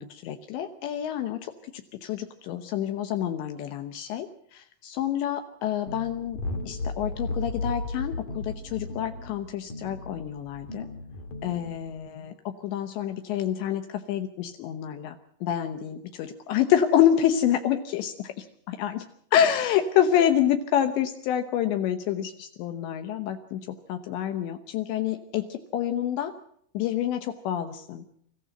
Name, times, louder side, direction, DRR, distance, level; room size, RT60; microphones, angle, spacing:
voice 1, 0.0-1.5 2.0-4.3 4.5-6.4 6.7-10.9 11.4-19.0 19.3-26.3 26.7-28.1, left 10 dB, 75° left, 7 dB, 3.1 m, -27 dB
sound 1, 5.9-12.1, left 2 dB, 55° left, 3.0 m, -35 dB
25.0 x 15.0 x 7.8 m, 0.68 s
omnidirectional pair, 5.3 m